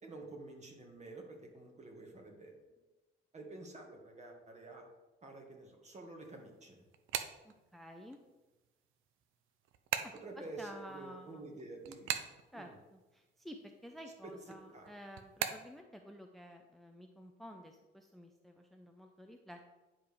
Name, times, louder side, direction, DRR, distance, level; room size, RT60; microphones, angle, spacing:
voice 1, 0.0-2.5 3.3-4.9 5.2-6.9 10.2-12.2 12.5-12.7 14.7-14.9, right 2 dB, 35° right, 1 dB, 1.8 m, -49 dB
sound 1, 6.3-8.2 8.6-13.2 13.5-15.8, right 10 dB, 90° right, 0.6 m, -40 dB
voice 2, 7.4-8.2 10.0-11.5 12.5-19.7, equal, ahead, 4 dB, 0.6 m, -52 dB
10.5 x 5.0 x 3.5 m, 1.1 s
cardioid pair, 90°, 20 cm